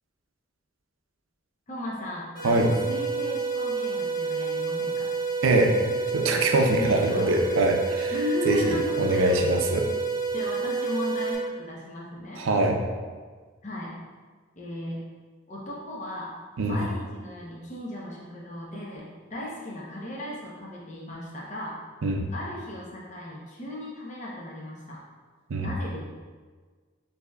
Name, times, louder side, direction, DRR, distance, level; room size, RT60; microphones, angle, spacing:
voice 1, 1.7-5.1 6.8-7.3 8.1-9.4 10.3-12.4 13.6-13.9 14.6-15.0 15.5-16.3 16.6-21.8 22.3-25.0 25.6-26.0, left 1 dB, 35° left, -4 dB, 0.7 m, -36 dB
sound 1, 2.3-11.3, right 4 dB, 20° left, 1.5 m, -29 dB
voice 2, 5.4-5.7 6.1-8.1 8.5-9.9 12.4-12.8 16.6-16.8 22.0-22.3 25.5-25.7, right 2 dB, 75° right, 3 dB, 0.5 m, -23 dB
6.5 x 2.8 x 2.2 m, 1.5 s
head